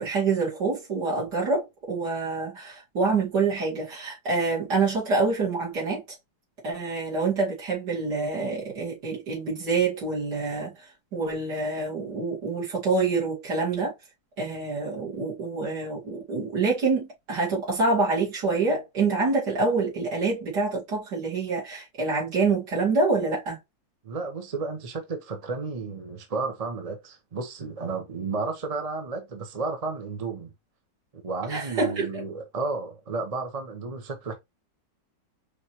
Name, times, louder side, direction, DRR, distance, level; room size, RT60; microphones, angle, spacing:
voice 1, 0.0-6.0 6.6-10.7 11.1-13.9 14.4-23.6 31.5-32.2, right 4 dB, 65° right, 3.2 m, -26 dB
voice 2, 24.0-30.5 31.1-34.3, right 4 dB, 35° right, 0.6 m, -32 dB
5.2 x 3.3 x 2.9 m
omnidirectional pair, 1.9 m